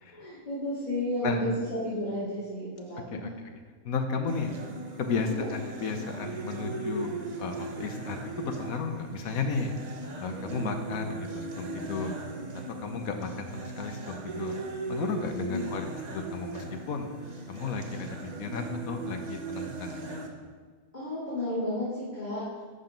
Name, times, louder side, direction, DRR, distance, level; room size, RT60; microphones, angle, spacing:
voice 1, 0.1-3.3 5.3-5.5 10.4-10.6 15.5-15.6 20.9-22.4, left 1 dB, 30° left, -12 dB, 2.7 m, -32 dB
voice 2, 3.8-4.5 5.0-7.1 7.4-9.7 10.2-12.1 12.8-14.5 14.9-17.1 17.5-20.2, left 5 dB, 80° left, 6 dB, 1.3 m, -33 dB
sound 1, 4.3-20.3, right 3 dB, 35° right, 0.8 m, -38 dB
11.5 x 4.0 x 5.2 m, 1.5 s
omnidirectional pair, 1.5 m